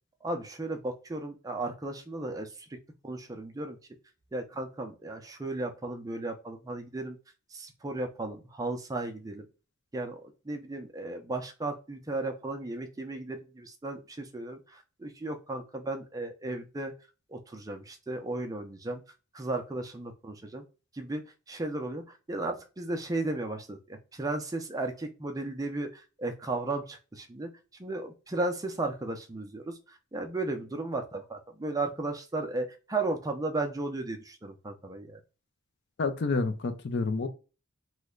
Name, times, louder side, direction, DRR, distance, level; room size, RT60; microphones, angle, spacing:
voice 1, 0.2-2.8 3.0-3.8 4.3-7.2 7.5-9.5 9.9-16.9 17.3-19.0 19.3-20.6 20.9-27.5 27.8-35.2, right 2 dB, 15° right, 0.4 m, -35 dB
voice 2, 36.0-37.3, left 3 dB, 55° left, 0.5 m, -29 dB
3.1 x 2.1 x 3.6 m
head